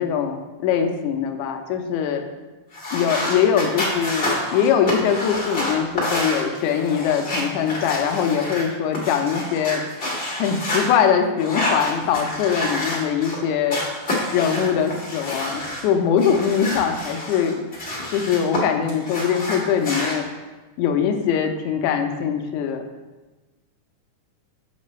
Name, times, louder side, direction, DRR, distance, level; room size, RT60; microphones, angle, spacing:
voice 1, 0.0-2.2 2.9-9.8 10.4-13.8 14.3-17.6 18.1-20.2 20.8-22.8, left 7 dB, 80° left, 5 dB, 1.9 m, -22 dB
sound 1, 2.7-10.9 11.4-13.4 13.7-15.8 16.2-18.6 18.9-20.1, left 1 dB, 60° left, 0.6 m, -28 dB
7.3 x 5.8 x 3.2 m, 1.2 s
omnidirectional pair, 3.7 m